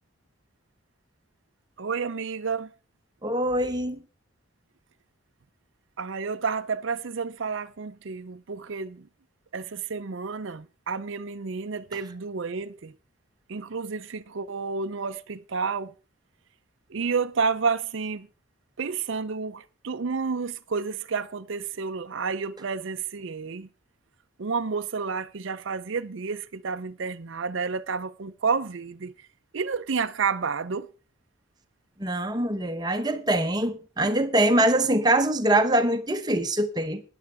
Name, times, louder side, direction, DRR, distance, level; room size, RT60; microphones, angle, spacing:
voice 1, 1.8-2.7 6.0-9.1 9.5-12.9 13.5-15.9 16.9-18.3 18.8-23.7 24.4-29.1 29.5-30.9, right 5 dB, 60° right, 0.5 m, -30 dB
voice 2, 3.2-4.0 32.0-37.0, right 1 dB, 20° right, 0.9 m, -23 dB
16.5 x 10.5 x 3.5 m
head